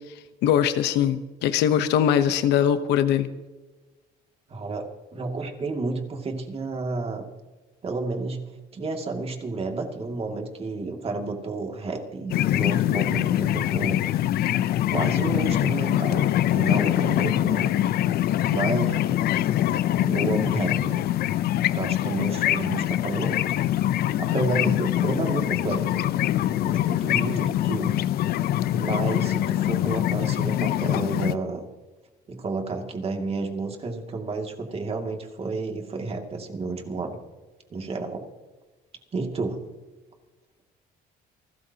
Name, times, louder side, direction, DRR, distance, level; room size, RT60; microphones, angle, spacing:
voice 1, 0.4-3.3 24.3-24.4, left 9 dB, 85° left, 11 dB, 1.0 m, -21 dB
voice 2, 4.5-4.8 5.1-7.2 7.8-8.4 8.7-14.0 14.9-17.7 18.4-19.0 20.0-21.1 21.7-23.4 23.9-26.0 26.6-28.0 28.7-31.7 32.3-37.2 37.7-38.2 39.1-39.6, right 3 dB, 35° right, 3 dB, 2.4 m, -31 dB
sound 1, 12.3-31.3, left 13 dB, 65° left, 0.6 m, -24 dB
28.5 x 13.5 x 2.9 m, 1.2 s
cardioid pair, 110°, 17 cm